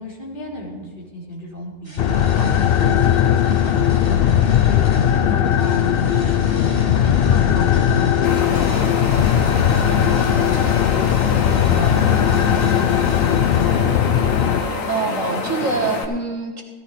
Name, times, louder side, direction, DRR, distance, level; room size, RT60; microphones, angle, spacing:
voice 1, 0.0-6.6 7.0-11.1 11.4-14.3, equal, 40° left, -5 dB, 3.4 m, -34 dB
sound 1, 1.8-14.5, equal, 20° left, 3.7 m, -40 dB
sound 2, 2.0-14.6, left 9 dB, 60° left, 0.7 m, -18 dB
Wind, 8.2-16.0, left 3 dB, 85° left, 1.6 m, -27 dB
voice 2, 14.9-16.6, right 4 dB, 80° right, 1 dB, 1.9 m, -24 dB
16.5 x 14.5 x 3.3 m, 1.4 s
omnidirectional pair, 1.3 m